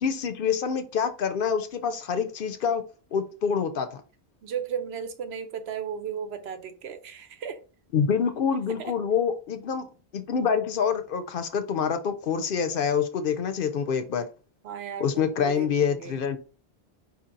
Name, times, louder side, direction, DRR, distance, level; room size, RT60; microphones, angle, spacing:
voice 1, 0.0-2.8 3.1-4.0 7.9-9.9 10.1-14.3 15.0-16.4, left 6 dB, 60° left, 0.7 m, -26 dB
voice 2, 4.4-7.6 8.8-8.9 14.6-16.2, right 7 dB, 80° right, 0.9 m, -35 dB
4.7 x 2.9 x 3.7 m
omnidirectional pair, 1.1 m